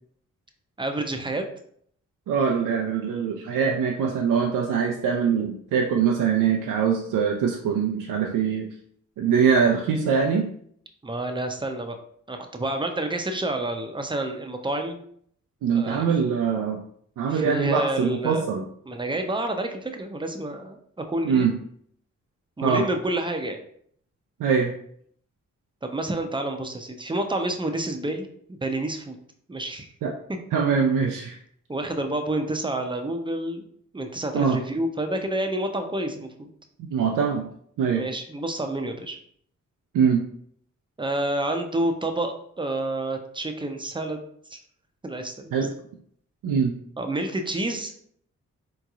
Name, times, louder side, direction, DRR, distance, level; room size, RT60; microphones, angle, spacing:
voice 1, 0.8-1.5 11.0-12.0 12.3-15.0 15.7-16.1 17.3-18.5 18.9-21.5 22.6-23.6 25.8-29.2 29.5-29.9 30.3-30.4 31.7-33.7 33.9-36.5 37.9-39.2 41.0-44.2 44.5-44.6 45.0-45.3 47.0-48.0, right 1 dB, 15° right, 5 dB, 0.5 m, -29 dB
voice 2, 2.3-8.7 9.2-10.5 15.6-16.8 17.2-18.6 21.2-21.5 22.6-22.8 24.4-24.7 30.0-30.1 30.5-31.4 34.3-34.6 36.8-37.4 37.8-38.0 39.9-40.2 45.5-45.7 46.4-46.7, right 6 dB, 80° right, 1 dB, 0.5 m, -23 dB
3.7 x 2.9 x 2.4 m, 0.64 s
cardioid pair, 50°, 31 cm